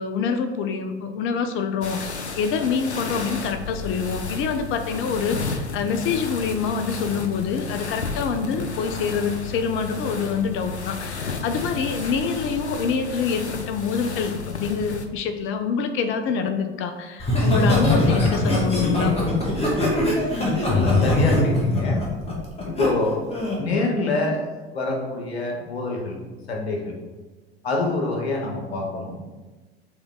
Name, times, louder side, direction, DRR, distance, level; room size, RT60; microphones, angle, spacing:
voice 1, 0.0-19.2, left 5 dB, 40° left, 8 dB, 0.7 m, -26 dB
sound 1, 1.8-15.1, left 4 dB, 90° left, 0.6 m, -32 dB
Laughter, 17.2-22.9 23.3-23.6, left 2 dB, 20° left, 1.8 m, -21 dB
voice 2, 20.6-22.1 22.6-23.3 23.5-26.2 26.5-27.0 27.6-29.2, left 2 dB, 70° left, 0 dB, 1.4 m, -26 dB
7.0 x 4.0 x 3.8 m, 1.2 s
figure-of-eight pair, 75°, 32 cm